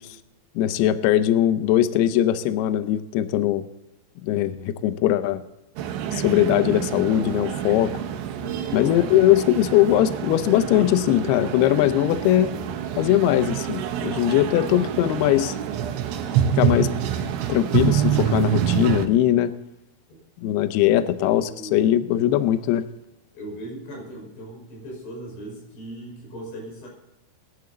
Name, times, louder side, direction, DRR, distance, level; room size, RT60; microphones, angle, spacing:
voice 1, 0.6-3.6 4.2-5.4 6.1-7.9 8.7-12.5 13.0-15.5 16.5-16.9 17.5-19.5 20.4-22.8, left 12 dB, 90° left, 12 dB, 2.2 m, -20 dB
sound 1, 5.8-19.1, right 9 dB, 80° right, 3.4 m, -27 dB
voice 2, 8.4-8.9 20.1-20.2 20.9-21.9 23.3-26.9, right 1 dB, 65° left, 0 dB, 7.2 m, -39 dB
21.0 x 11.0 x 3.9 m, 0.92 s
omnidirectional pair, 5.6 m